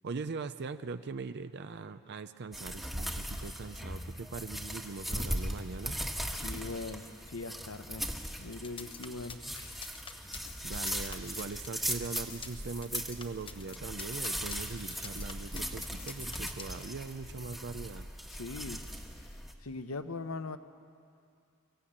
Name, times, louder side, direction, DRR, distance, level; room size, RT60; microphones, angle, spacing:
voice 1, 0.0-6.0 10.6-18.1, right 4 dB, 55° right, 11 dB, 0.6 m, -41 dB
sound 1, 2.5-19.5, equal, ahead, 1.3 m, -39 dB
voice 2, 6.3-8.0 8.4-9.6 18.3-18.8 19.6-20.6, left 3 dB, 90° left, 10 dB, 0.9 m, -40 dB
sound 2, 8.5-16.9, left 5 dB, 25° left, 1.0 m, -46 dB
sound 3, 9.5-10.1 10.5-11.9 12.3-12.8 13.2-13.8 14.1-15.1 15.5-16.7, left 5 dB, 50° left, 1.8 m, -53 dB
25.0 x 15.0 x 8.8 m, 2.5 s
head